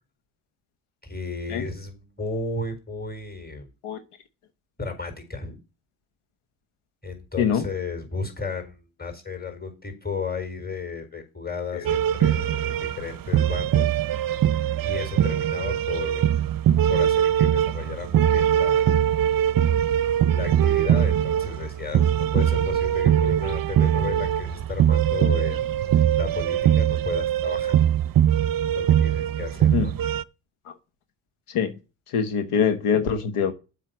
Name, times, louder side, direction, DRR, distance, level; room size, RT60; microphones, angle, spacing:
voice 1, 1.0-3.7 4.8-5.6 7.0-13.9 14.8-16.3 16.9-19.0 20.3-25.6 26.2-27.8 28.7-29.9, left 4 dB, 20° left, 4.4 m, -34 dB
sound 1, 11.8-30.2, right 10 dB, 45° right, 0.6 m, -22 dB
voice 2, 32.1-33.5, left 7 dB, 85° left, 1.3 m, -23 dB
7.6 x 5.7 x 7.1 m
supercardioid pair, 60°, 50 cm